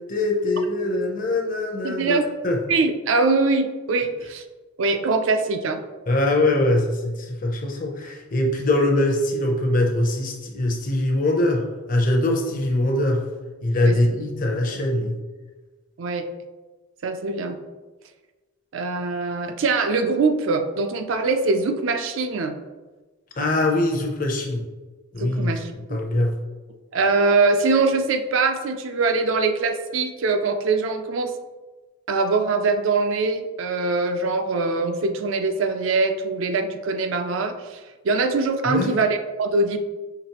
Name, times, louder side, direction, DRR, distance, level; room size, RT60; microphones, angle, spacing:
voice 1, 0.0-2.2 2.4-2.6 6.1-13.3 13.6-15.2 23.4-24.6 25.1-26.3 38.7-39.0, left 1 dB, 40° left, 2 dB, 0.6 m, -22 dB
voice 2, 1.8-2.3 2.7-4.4 4.8-5.8 13.8-14.0 16.0-16.3 17.0-17.6 18.7-22.6 25.2-26.0 26.9-31.3 32.1-37.8 38.0-39.8, right 3 dB, 70° right, 7 dB, 0.4 m, -23 dB
5.8 x 3.1 x 2.9 m, 1.2 s
head